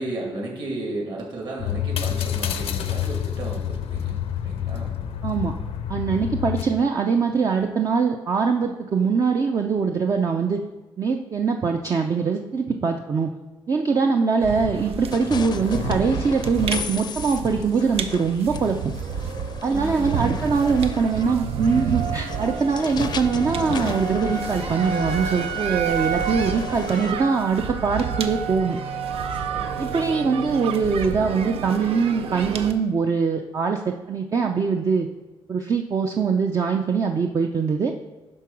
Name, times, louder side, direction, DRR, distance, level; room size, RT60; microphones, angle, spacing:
voice 1, 0.0-4.2 4.4-4.9 7.1-7.6 19.7-20.8 29.3-29.8, right 2 dB, 50° right, -1 dB, 2.3 m, -34 dB
sound 1, 1.6-6.6, left 10 dB, 85° left, 0.6 m, -28 dB
voice 2, 5.2-5.5 5.9-10.6 11.0-13.3 13.7-18.9 19.6-28.8 29.8-35.1 35.5-37.9, right 5 dB, 35° right, 4 dB, 0.5 m, -22 dB
sound 2, 14.4-32.7, right 7 dB, 75° right, 0.7 m, -30 dB
sound 3, 15.1-27.1, left 6 dB, 45° left, 0.5 m, -35 dB
11.0 x 3.9 x 5.9 m, 1.1 s
cardioid pair, 130°, 10 cm